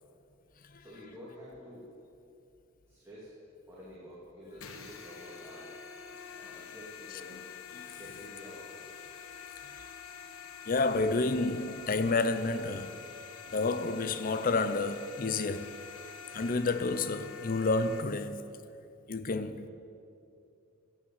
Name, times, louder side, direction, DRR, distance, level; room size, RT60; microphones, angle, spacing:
voice 1, 0.8-1.9 2.8-3.3 3.7-5.7 6.3-7.4 8.0-8.8, equal, 15° right, 2.7 m, -49 dB
sound 1, 4.6-18.0, left 6 dB, 85° left, 1.2 m, -47 dB
voice 2, 10.7-13.0 13.5-15.8 16.3-18.5 19.1-19.7, left 3 dB, 45° left, 0.6 m, -30 dB
15.0 x 8.9 x 7.3 m
head